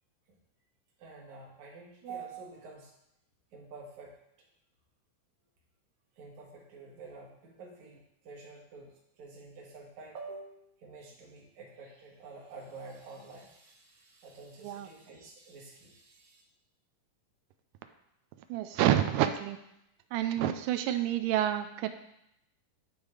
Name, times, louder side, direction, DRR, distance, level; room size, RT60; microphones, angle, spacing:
voice 1, 1.0-2.9 3.5-4.1 6.2-16.4, right 4 dB, 60° right, -2 dB, 2.6 m, -48 dB
voice 2, 18.5-19.6 20.1-21.9, right 12 dB, 80° right, 8 dB, 2.0 m, -28 dB
10.5 x 3.6 x 4.8 m, 0.81 s
omnidirectional pair, 4.0 m